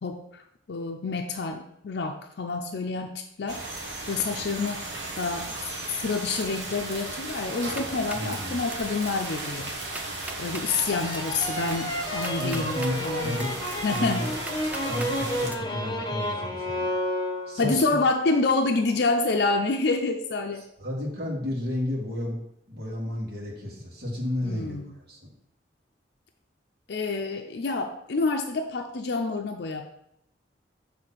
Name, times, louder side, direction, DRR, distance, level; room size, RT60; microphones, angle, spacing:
voice 1, 0.0-0.4 0.7-3.6 4.1-4.8 5.2-5.5 5.9-9.8 10.4-13.4 13.8-14.3 17.6-20.6 24.4-24.9 26.9-29.9, left 3 dB, 65° left, 3 dB, 0.5 m, -28 dB
sound 1, 3.5-15.5, right 2 dB, 80° right, 1.3 m, -35 dB
sound 2, 7.5-8.3 8.7-9.1 9.4-9.5 9.8-10.6 11.1-12.9 13.4-15.1 15.5-15.6, right 2 dB, 10° right, 0.4 m, -40 dB
voice 2, 8.1-8.6 11.6-13.6 13.9-14.3 14.8-16.9 17.5-18.0 20.8-22.4 22.7-24.8 25.1-25.3, left 1 dB, 60° right, -4 dB, 2.1 m, -32 dB
sound 3, 10.6-17.8, equal, 25° left, 0.8 m, -31 dB
6.7 x 3.3 x 6.1 m, 0.78 s
head